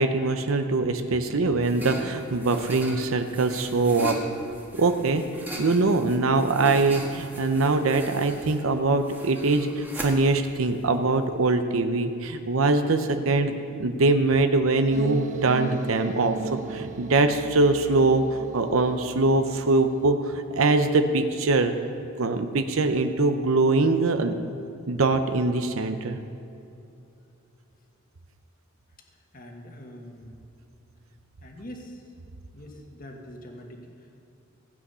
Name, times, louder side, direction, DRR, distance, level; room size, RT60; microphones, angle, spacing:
voice 1, 0.0-4.2 4.8-5.2 5.6-16.4 16.7-21.7 22.2-24.4 24.9-26.2, right 3 dB, 85° right, 7 dB, 0.7 m, -23 dB
sound 1, 1.5-11.6, right 1 dB, 10° right, 1.4 m, -40 dB
sound 2, 14.9-20.1, right 5 dB, 35° right, 0.4 m, -37 dB
voice 2, 29.3-30.4 31.4-32.0 32.5-34.2, equal, 45° left, 2 dB, 1.5 m, -43 dB
16.0 x 8.5 x 5.5 m, 2.7 s
head